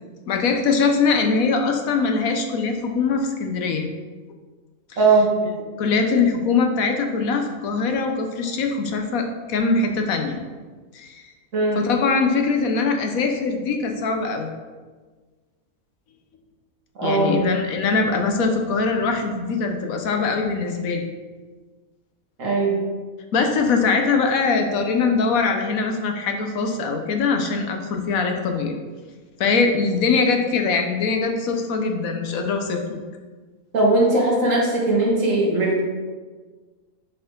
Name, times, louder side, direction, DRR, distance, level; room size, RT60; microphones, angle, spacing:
voice 1, 0.3-3.9 5.8-10.4 10.9-11.2 11.7-14.5 17.0-21.1 23.3-28.8 29.4-33.0, left 4 dB, 75° left, 4 dB, 1.2 m, -22 dB
voice 2, 5.0-5.3 11.5-11.8 17.0-17.4 22.4-22.8 33.7-35.8, right 2 dB, 60° right, -3 dB, 1.8 m, -19 dB
7.2 x 4.7 x 3.9 m, 1.4 s
omnidirectional pair, 1.5 m